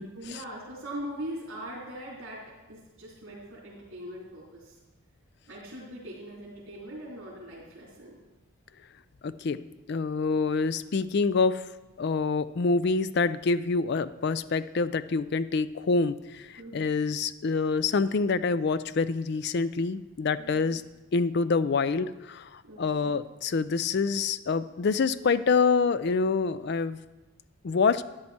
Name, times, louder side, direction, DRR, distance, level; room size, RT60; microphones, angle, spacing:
voice 1, 0.1-2.4 2.7-4.7 5.5-8.2 10.3-10.4 16.6-16.9 20.4-20.8 22.6-23.2, right 1 dB, 65° right, -9 dB, 3.4 m, -41 dB
voice 2, 9.2-11.6 12.0-20.8 21.1-27.0 27.6-28.0, left 4 dB, 50° left, 14 dB, 0.4 m, -26 dB
12.5 x 9.8 x 4.3 m, 1.1 s
head